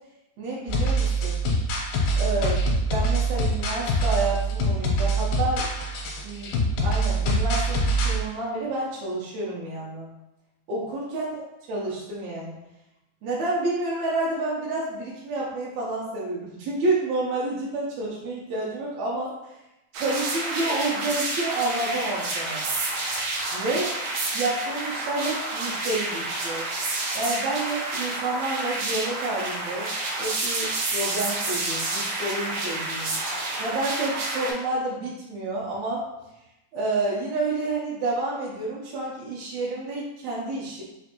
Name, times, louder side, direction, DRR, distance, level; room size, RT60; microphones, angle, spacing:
voice 1, 0.4-1.4 2.1-5.7 6.2-6.5 6.8-10.1 10.7-11.4 11.7-12.5 13.2-19.3 19.9-22.6 23.5-24.0 24.3-26.7 27.1-29.9 30.2-33.2 33.6-36.1 36.7-40.8, right 2 dB, 75° right, -6 dB, 1.7 m, -29 dB
sound 1, 0.7-8.2, right 1 dB, 80° left, 2.2 m, -24 dB
sound 2, 19.9-34.5, right 2 dB, 90° right, 1.4 m, -29 dB
5.2 x 2.5 x 2.9 m, 0.94 s
omnidirectional pair, 3.9 m